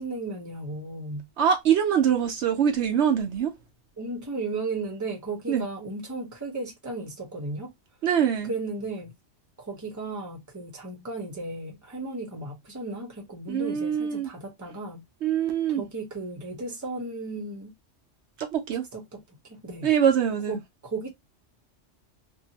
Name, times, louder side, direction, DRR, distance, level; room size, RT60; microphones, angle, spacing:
voice 1, 0.0-1.3 4.0-7.7 8.5-9.1 9.6-15.0 15.7-17.7 18.9-19.9 20.5-20.6 20.8-21.1, right 3 dB, 15° right, 0.8 m, -35 dB
voice 2, 1.4-3.5 5.5-5.6 8.0-8.5 13.5-14.3 15.2-15.9 18.4-18.8 19.8-20.6, right 8 dB, 70° right, 0.9 m, -24 dB
2.7 x 2.6 x 2.8 m
omnidirectional pair, 1.2 m